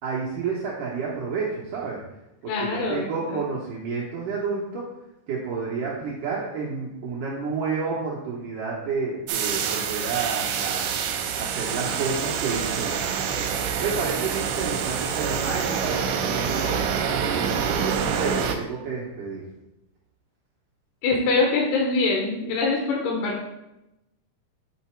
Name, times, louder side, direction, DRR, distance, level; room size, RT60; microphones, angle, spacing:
voice 1, 0.0-2.0 2.4-4.8 5.3-10.9 11.4-13.1 13.8-19.4, right 4 dB, 70° right, -5 dB, 2.0 m, -30 dB
voice 2, 2.5-3.4 21.0-23.5, left 3 dB, 80° left, -2 dB, 2.9 m, -24 dB
sound 1, 9.3-18.6, right 7 dB, 90° right, 2.7 m, -26 dB
8.2 x 3.9 x 4.4 m, 0.92 s
omnidirectional pair, 4.7 m